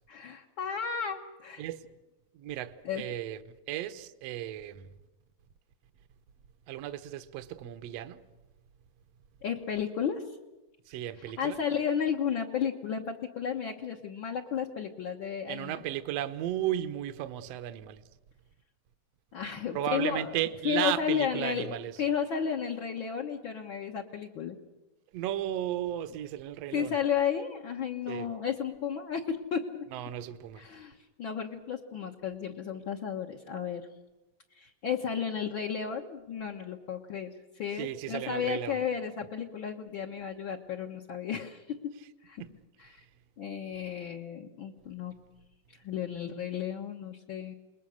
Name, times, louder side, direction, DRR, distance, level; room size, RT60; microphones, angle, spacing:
voice 1, 0.1-1.6 2.8-3.0 9.4-10.2 11.4-15.8 19.3-20.3 20.6-24.6 26.7-29.8 30.6-33.9 34.5-41.9 42.2-42.4 42.8-43.0 43.4-45.1 45.8-47.5, left 7 dB, 55° left, 1.5 m, -33 dB
voice 2, 2.3-4.9 6.7-8.2 10.9-11.6 15.5-18.0 19.7-22.0 25.1-27.0 28.1-28.3 29.9-30.7 37.8-38.8 42.4-42.6 42.8-42.9, right 12 dB, 65° right, 1.8 m, -35 dB
29.0 x 21.5 x 6.5 m
omnidirectional pair, 3.8 m